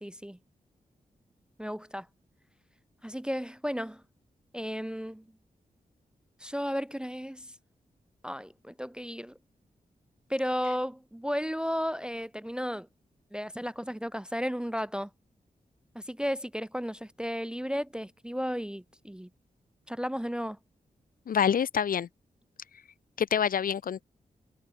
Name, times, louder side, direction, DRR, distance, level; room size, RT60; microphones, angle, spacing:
voice 1, 0.0-0.4 1.6-2.1 3.0-4.0 4.5-5.2 6.4-7.5 8.2-9.4 10.3-12.9 13.3-15.1 15.9-19.3 19.9-20.6, equal, 5° right, 0.4 m, -34 dB
voice 2, 21.3-22.1 23.2-24.0, left 8 dB, 70° left, 0.7 m, -26 dB
cardioid pair, 60°, 15 cm